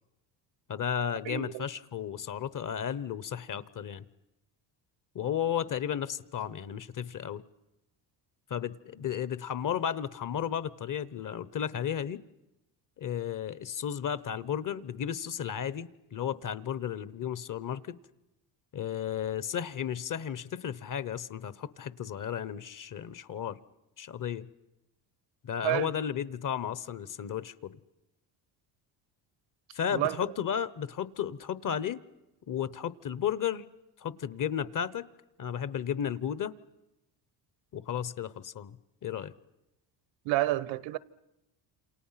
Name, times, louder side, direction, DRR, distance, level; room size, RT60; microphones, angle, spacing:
voice 1, 0.7-4.0 5.1-7.4 8.5-12.2 13.0-18.0 18.7-23.6 24.0-24.5 25.4-27.7 29.7-32.0 32.5-33.6 34.0-35.1 35.4-36.5 37.7-38.8 39.0-39.3, left 9 dB, 45° left, 1.2 m, -33 dB
voice 2, 1.2-1.6 25.6-25.9 29.9-30.2 40.2-41.0, right 16 dB, 85° right, 1.0 m, -29 dB
29.0 x 28.0 x 5.9 m
cardioid pair, 95°, 44 cm